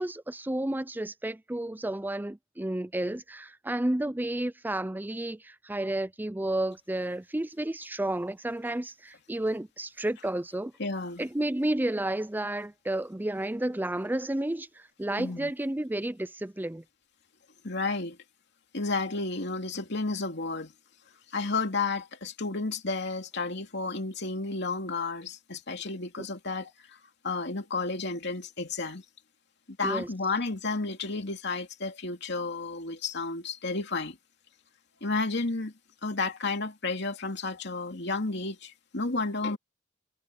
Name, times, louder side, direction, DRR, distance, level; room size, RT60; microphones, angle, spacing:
voice 1, 0.0-10.7 11.2-14.7 15.0-16.8 29.8-30.1, right 1 dB, 10° right, 0.5 m, -31 dB
voice 2, 10.8-11.3 15.2-15.5 17.6-18.2 18.7-20.7 21.3-26.7 27.2-29.0 29.7-34.2 35.0-35.7 36.0-39.6, left 3 dB, 60° left, 2.8 m, -32 dB
head